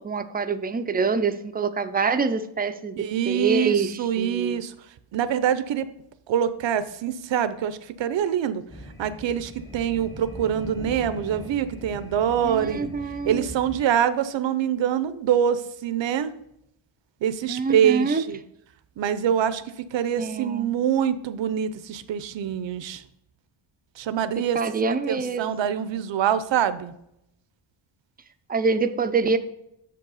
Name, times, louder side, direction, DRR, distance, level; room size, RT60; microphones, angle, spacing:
voice 1, 0.0-4.6 12.4-13.5 17.5-18.2 20.2-20.7 24.5-25.5 28.5-29.4, right 4 dB, 20° right, 10 dB, 0.4 m, -25 dB
voice 2, 3.0-4.7 5.1-5.9 6.3-8.6 9.0-12.9 13.3-16.3 17.2-18.4 19.0-23.0 24.0-24.6 25.1-26.9, right 9 dB, 65° right, 13 dB, 0.6 m, -25 dB
sound 1, 8.7-13.8, equal, 5° left, 0.8 m, -40 dB
7.0 x 5.4 x 4.0 m, 0.79 s
wide cardioid pair, 120°, 50 cm